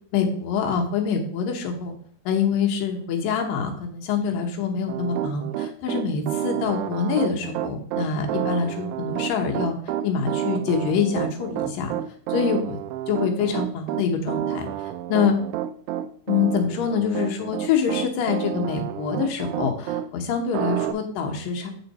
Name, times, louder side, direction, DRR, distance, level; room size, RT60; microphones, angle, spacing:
voice 1, 0.1-1.9 2.3-9.7 10.0-12.0 12.3-12.8 13.1-14.7 15.1-15.4 16.3-21.7, left 6 dB, 90° left, 3 dB, 2.8 m, -25 dB
Piano, 4.9-20.1 20.5-20.9, right 11 dB, 85° right, 1.7 m, -29 dB
9.0 x 4.5 x 4.1 m, 0.62 s
omnidirectional pair, 3.8 m